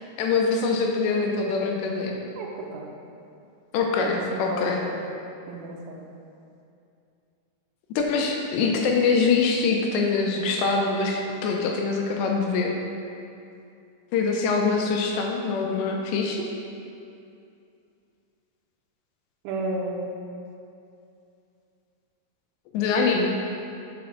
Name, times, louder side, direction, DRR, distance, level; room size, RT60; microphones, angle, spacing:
voice 1, 0.0-2.2 3.7-4.8 8.0-12.8 14.1-16.5 22.7-23.3, left 4 dB, 85° left, 1 dB, 2.7 m, -24 dB
voice 2, 2.4-2.9 4.0-5.1 5.5-6.1 19.4-20.3, right 2 dB, 90° right, 0 dB, 3.2 m, -33 dB
7.1 x 5.0 x 6.3 m, 2.6 s
omnidirectional pair, 5.2 m